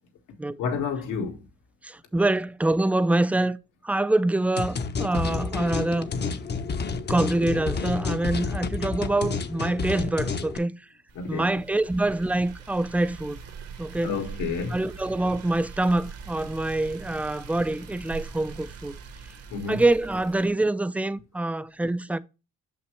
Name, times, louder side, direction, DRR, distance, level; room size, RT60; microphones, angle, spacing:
voice 1, 0.6-1.4 6.3-6.4 11.2-11.5 14.0-14.8 19.5-19.8, left 5 dB, 80° left, 1.8 m, -30 dB
voice 2, 1.8-3.6 3.8-6.1 7.1-10.7 11.3-13.4 13.8-14.1 14.7-18.9 19.7-22.2, right 2 dB, 5° right, 0.4 m, -25 dB
sound 1, 4.6-10.6, left 4 dB, 35° left, 0.8 m, -30 dB
sound 2, 11.1-20.5, right 6 dB, 55° right, 1.2 m, -42 dB
6.6 x 5.7 x 3.1 m
cardioid pair, 90°, 30 cm